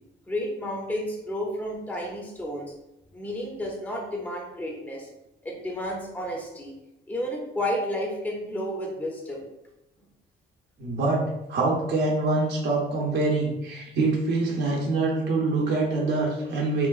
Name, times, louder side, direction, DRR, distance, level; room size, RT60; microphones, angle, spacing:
voice 1, 0.3-2.7 3.1-5.1 5.4-6.7 7.1-9.4, equal, 5° left, -1 dB, 0.6 m, -31 dB
voice 2, 10.8-16.9, right 3 dB, 60° right, -4 dB, 0.7 m, -25 dB
3.8 x 2.2 x 2.4 m, 0.91 s
cardioid pair, 90°, 20 cm